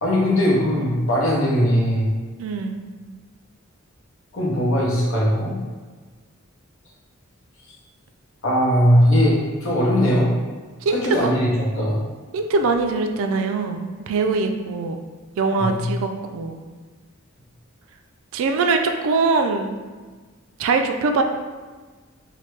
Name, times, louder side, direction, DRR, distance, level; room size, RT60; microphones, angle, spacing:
voice 1, 0.0-2.1 4.3-5.6 8.4-10.3 10.9-12.0 15.6-15.9, equal, 70° left, -4 dB, 0.9 m, -19 dB
voice 2, 2.4-2.8 10.8-11.4 12.3-15.0 15.4-16.6 18.3-19.7 20.6-21.2, right 3 dB, 65° right, 5 dB, 0.3 m, -22 dB
3.1 x 2.2 x 3.2 m, 1.4 s
head